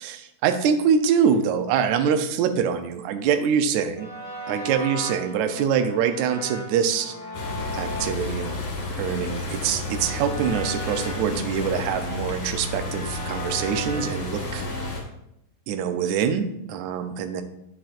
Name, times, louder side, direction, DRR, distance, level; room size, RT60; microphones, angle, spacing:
voice 1, 0.0-4.1 4.5-7.1 7.7-8.7 9.0-14.9 15.7-17.4, right 7 dB, 80° right, 7 dB, 1.8 m, -24 dB
sound 1, 4.0-14.9, equal, 40° left, 2.9 m, -37 dB
sound 2, 7.3-15.0, left 2 dB, 60° left, 2.7 m, -32 dB
10.0 x 5.8 x 2.5 m, 0.80 s
omnidirectional pair, 3.8 m